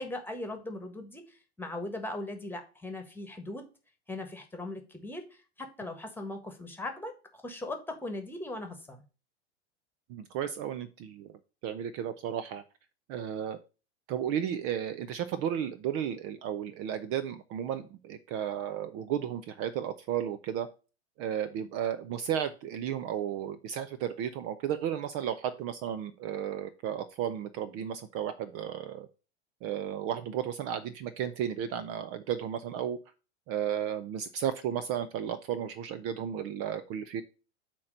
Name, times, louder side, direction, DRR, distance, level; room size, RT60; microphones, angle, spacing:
voice 1, 0.0-3.6 4.1-9.0, left 2 dB, 5° left, 5 dB, 1.4 m, -39 dB
voice 2, 10.1-11.3 11.6-12.6 13.1-13.6 14.1-20.7 21.2-29.1 29.6-33.0 33.5-37.2, right 9 dB, 40° right, 12 dB, 0.6 m, -33 dB
8.5 x 3.0 x 6.4 m, 0.33 s
hypercardioid pair, 115°, 34 cm